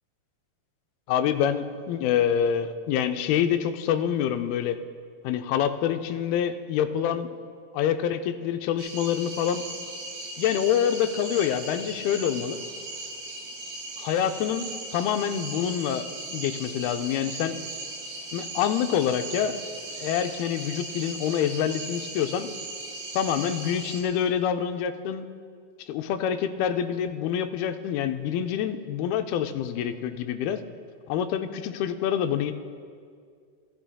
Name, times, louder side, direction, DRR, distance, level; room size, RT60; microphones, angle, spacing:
voice 1, 1.1-4.8 5.2-7.3 7.7-9.6 10.4-12.6 14.0-16.1 16.3-17.6 18.3-19.6 20.0-22.5 23.1-25.3 25.9-30.6 31.1-32.5, left 9 dB, 85° left, 8 dB, 2.4 m, -26 dB
sound 1, 8.8-24.0, right 2 dB, 80° right, 3.7 m, -38 dB
16.0 x 13.0 x 2.3 m, 2.1 s
omnidirectional pair, 4.4 m